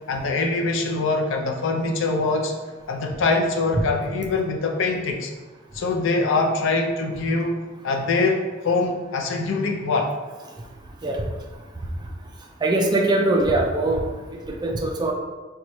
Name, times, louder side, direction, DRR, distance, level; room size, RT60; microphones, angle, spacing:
voice 1, 0.0-2.5 2.9-5.3 5.7-10.1, left 3 dB, 65° left, 2 dB, 0.5 m, -23 dB
voice 2, 12.6-14.0 14.5-15.1, right 2 dB, 20° right, 1 dB, 0.3 m, -21 dB
4.0 x 2.2 x 3.0 m, 1.3 s
head